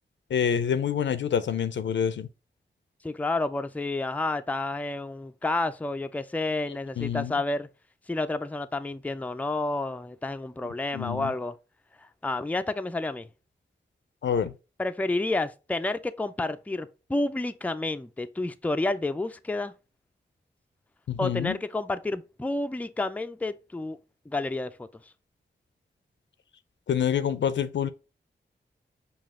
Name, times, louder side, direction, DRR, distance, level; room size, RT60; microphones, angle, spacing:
voice 1, 0.3-2.3 7.0-7.3 10.9-11.3 14.2-14.5 21.1-21.6 26.9-27.9, left 8 dB, 75° left, 0.5 m, -27 dB
voice 2, 3.0-7.7 8.1-11.6 12.2-13.3 14.8-19.7 21.2-24.0 24.3-24.9, left 2 dB, 10° left, 0.4 m, -30 dB
5.4 x 2.4 x 3.6 m
cardioid pair, 45°, 19 cm